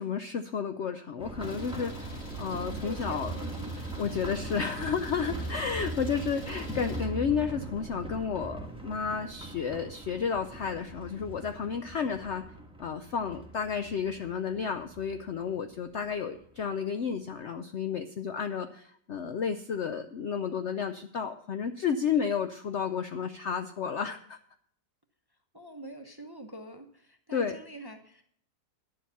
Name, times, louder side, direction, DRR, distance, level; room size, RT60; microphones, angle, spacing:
voice 1, 0.0-3.3 3.8-12.4 12.8-24.4 27.3-27.6, left 6 dB, 85° left, 9 dB, 0.6 m, -32 dB
sound 1, 1.2-16.7 16.9-17.0 17.4-17.5, right 2 dB, 5° right, 1.1 m, -40 dB
Idling, 1.4-7.0, left 1 dB, 65° left, 2.9 m, -49 dB
voice 2, 2.8-3.7 25.5-28.2, right 1 dB, 20° right, 6 dB, 0.6 m, -45 dB
11.0 x 7.3 x 6.9 m, 0.65 s
omnidirectional pair, 1.9 m